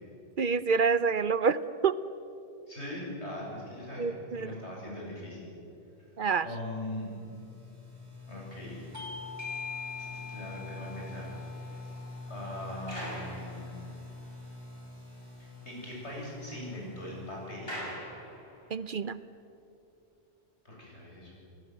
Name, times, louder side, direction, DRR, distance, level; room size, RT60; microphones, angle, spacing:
voice 1, 0.4-2.0 4.0-4.5 6.2-6.5 18.7-19.2, right 5 dB, 55° right, 15 dB, 0.8 m, -27 dB
voice 2, 2.7-5.5 6.4-7.1 8.3-8.9 10.0-11.3 12.3-13.7 15.6-17.8 20.6-21.4, left 1 dB, 85° left, -3 dB, 8.5 m, -41 dB
sound 1, 6.3-18.1, left 2 dB, 75° right, 4.4 m, -46 dB
Bell / Doorbell, 8.9-14.1, left 5 dB, 15° right, 2.1 m, -44 dB
sound 2, 10.9-14.2 14.7-14.8 15.2-15.3 15.6-18.8, equal, 60° left, 7.0 m, -46 dB
30.0 x 18.5 x 7.9 m, 2.8 s
omnidirectional pair, 1.1 m